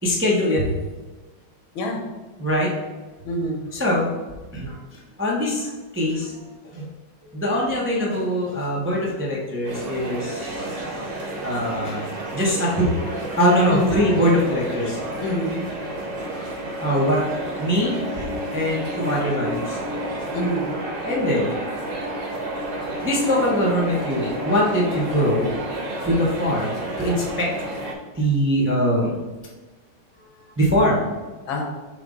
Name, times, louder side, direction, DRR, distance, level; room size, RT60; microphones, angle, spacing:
voice 1, 0.0-0.7 2.4-2.7 3.7-4.1 4.5-6.9 7.3-10.8 11.4-12.9 13.4-15.2 16.8-17.3 17.6-18.0 18.5-19.8 21.0-21.5 23.0-25.5 26.0-27.5 28.1-29.2 30.6-31.0, equal, 10° right, -4 dB, 0.7 m, -22 dB
voice 2, 3.2-3.6 13.7-14.0 15.2-15.6 20.3-20.7 31.5-31.6, equal, 75° left, 1 dB, 1.8 m, -25 dB
sound 1, 9.7-27.9, right 1 dB, 65° right, 2.1 m, -30 dB
6.9 x 3.6 x 3.9 m, 1.2 s
omnidirectional pair, 2.2 m